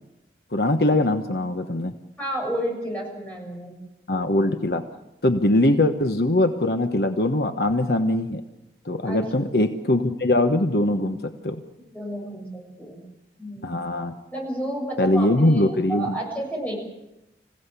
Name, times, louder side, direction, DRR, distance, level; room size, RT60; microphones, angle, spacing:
voice 1, 0.5-1.9 4.1-4.8 5.2-8.4 8.8-11.6 13.6-14.1 15.0-16.2, left 1 dB, 65° left, 7 dB, 1.2 m, -22 dB
voice 2, 2.2-3.7 9.0-9.5 11.9-13.0 13.4-13.8 14.3-15.6 15.9-16.8, right 1 dB, 10° left, -1 dB, 7.0 m, -31 dB
26.5 x 16.5 x 8.3 m, 0.92 s
head